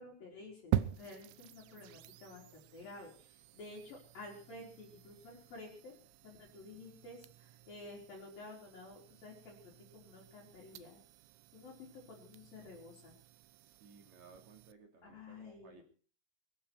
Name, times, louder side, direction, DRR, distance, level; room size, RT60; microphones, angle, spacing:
voice 1, 0.0-5.9 6.2-11.0 11.5-13.1 15.0-15.8, left 2 dB, 50° left, -2 dB, 5.3 m, -52 dB
sound 1, 0.7-14.7, right 12 dB, 80° right, 3.1 m, -45 dB
voice 2, 13.6-15.8, right 5 dB, 45° right, 4 dB, 3.4 m, -59 dB
22.5 x 13.0 x 4.6 m, 0.42 s
omnidirectional pair, 5.4 m